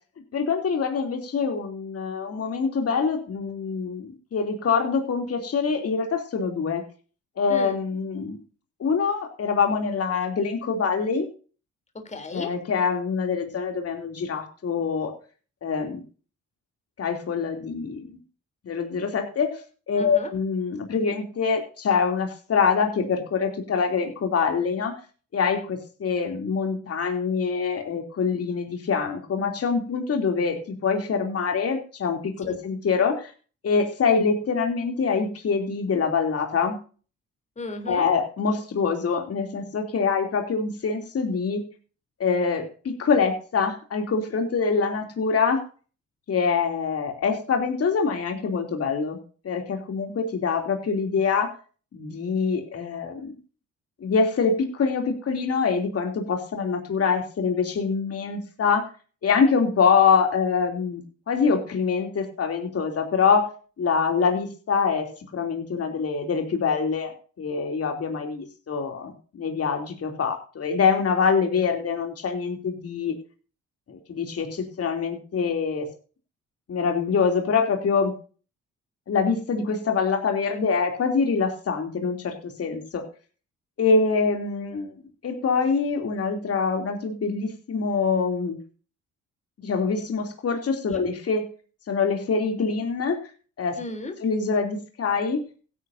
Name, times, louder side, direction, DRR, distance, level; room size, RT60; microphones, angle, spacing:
voice 1, 0.3-6.8 7.4-8.4 8.8-11.3 12.3-15.1 15.6-16.0 17.0-18.2 18.6-19.6 19.9-24.9 25.3-33.3 33.6-36.8 37.9-41.6 42.2-45.6 46.3-49.2 49.4-51.5 51.9-53.3 54.0-58.8 59.2-61.0 61.3-63.5 63.8-73.2 73.9-75.9 76.7-78.1 79.1-83.0 83.8-84.9 85.2-88.6 89.6-91.4 91.9-93.2 93.6-93.8 94.2-95.4, left 5 dB, 50° left, 4 dB, 3.1 m, -25 dB
voice 2, 11.9-12.5 20.0-20.3 32.4-32.5 37.6-38.1 90.9-91.0 93.8-94.1, left 2 dB, 25° left, 5 dB, 3.5 m, -35 dB
16.5 x 10.0 x 2.7 m, 0.38 s
cardioid pair, 90°, 30 cm